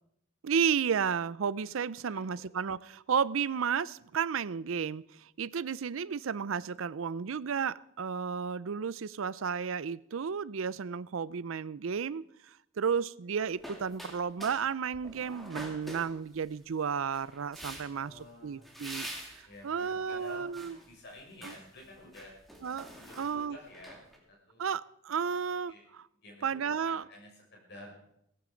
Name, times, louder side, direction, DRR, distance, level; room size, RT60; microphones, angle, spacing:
voice 1, 0.4-19.1 19.4-20.8 21.4-21.5 22.6-22.9 23.2-23.6 24.6-26.1 26.4-27.0, right 6 dB, 70° right, 19 dB, 0.5 m, -33 dB
voice 2, 2.0-2.4 17.9-18.7 19.4-22.3 22.9-24.0 24.5-24.6 25.7-25.8 26.2-26.4 26.8-27.9, left 1 dB, 55° left, 0 dB, 6.8 m, -51 dB
sound 1, 13.4-14.7 14.9-16.6 17.1-18.1 18.6-19.4 19.9-20.9 21.2-21.6 22.0-24.2, right 1 dB, ahead, 2.9 m, -45 dB
17.0 x 14.5 x 5.1 m, 0.75 s
head